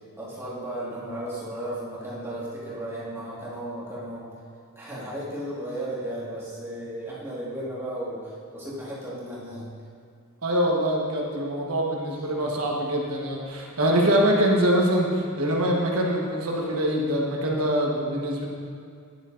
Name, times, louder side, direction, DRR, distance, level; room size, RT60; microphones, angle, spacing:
voice 1, 0.2-4.3 4.8-9.7, right 1 dB, 10° right, -8 dB, 1.8 m, -34 dB
voice 2, 10.4-18.5, equal, 85° right, -2 dB, 1.3 m, -24 dB
10.0 x 6.7 x 2.6 m, 2.4 s
head